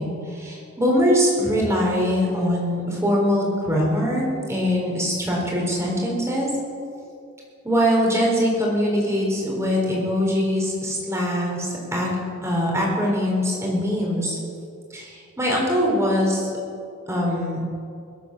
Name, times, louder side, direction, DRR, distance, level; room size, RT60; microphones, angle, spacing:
voice 1, 0.0-6.5 7.6-12.1 12.4-14.4 14.9-16.5 17.1-17.6, equal, 15° right, -2 dB, 4.0 m, -22 dB
21.5 x 8.5 x 7.1 m, 2.4 s
head